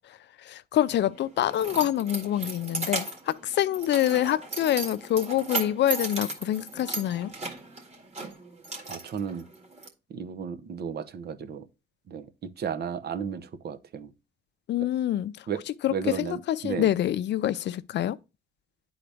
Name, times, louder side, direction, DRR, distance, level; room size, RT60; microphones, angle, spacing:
voice 1, 0.1-7.3 14.7-15.5 15.8-18.2, left 12 dB, 60° left, 0.5 m, -26 dB
Keys jangling, 0.8-9.9, right 3 dB, 35° right, 2.0 m, -36 dB
voice 2, 8.9-9.4 10.1-11.6 12.1-12.3 12.6-14.1 15.5-15.6 15.9-16.9, right 7 dB, 55° right, 0.8 m, -34 dB
9.9 x 3.9 x 3.4 m
cardioid pair, 90°, 20 cm